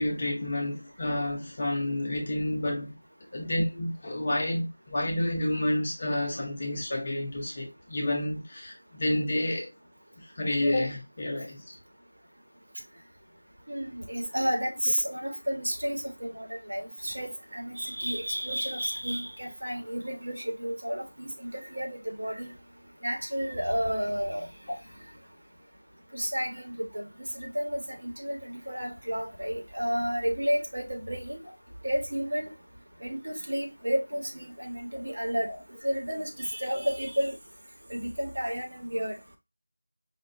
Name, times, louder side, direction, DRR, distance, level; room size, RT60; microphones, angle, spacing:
voice 1, 0.0-3.0 3.3-9.7 10.2-11.8, left 1 dB, 20° left, 0.6 m, -29 dB
voice 2, 13.7-22.5 23.0-24.5 26.1-27.1 27.3-31.4 31.8-32.5 33.0-35.5 35.8-37.4 37.9-39.1, equal, 65° right, 1.2 m, -31 dB
5.4 x 2.2 x 2.5 m
figure-of-eight pair, 180°, 0 cm